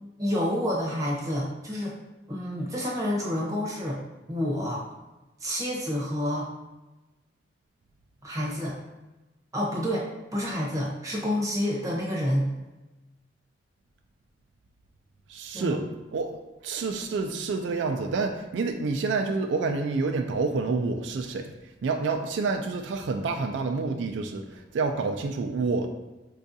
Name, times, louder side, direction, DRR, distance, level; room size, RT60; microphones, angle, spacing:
voice 1, 0.2-2.0 2.3-4.0 4.3-4.8 5.4-6.5 8.2-8.8 9.5-12.5 15.5-15.8, equal, 20° right, -4 dB, 0.7 m, -28 dB
voice 2, 15.3-15.8 16.1-16.3 16.6-21.5 21.8-25.9, right 4 dB, 90° right, 5 dB, 0.3 m, -28 dB
4.5 x 2.4 x 2.6 m, 1.1 s
head